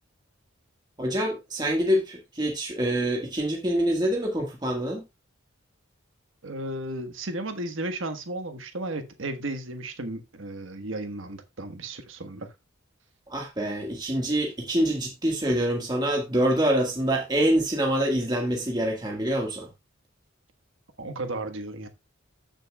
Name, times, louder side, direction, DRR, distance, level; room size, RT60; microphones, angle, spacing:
voice 1, 1.0-5.0 13.3-19.7, right 1 dB, 20° right, 1.6 m, -25 dB
voice 2, 6.4-12.5 21.0-21.9, right 2 dB, 70° right, 1.4 m, -34 dB
14.5 x 6.6 x 2.3 m
head